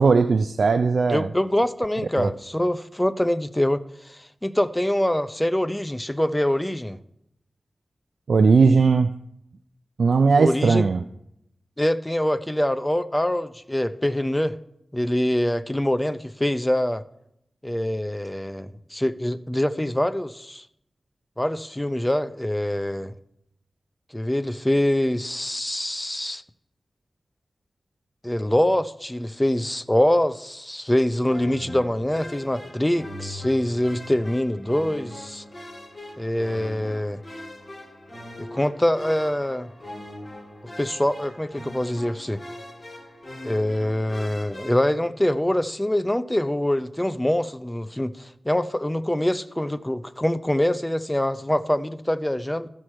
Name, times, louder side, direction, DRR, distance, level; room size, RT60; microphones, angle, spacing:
voice 1, 0.0-1.3 2.2-2.3 8.3-9.1 10.0-11.0, right 4 dB, 85° right, 0.3 m, -18 dB
voice 2, 1.1-7.0 10.4-10.9 11.8-14.6 14.9-17.0 17.6-20.6 21.4-23.1 24.1-26.4 28.2-35.4 36.2-37.2 38.4-39.7 40.8-42.4 43.4-52.7, left 1 dB, 10° left, 0.5 m, -24 dB
sound 1, 31.2-45.0, left 1 dB, 25° left, 3.0 m, -41 dB
14.0 x 6.4 x 4.3 m
wide cardioid pair, 90°, 0 cm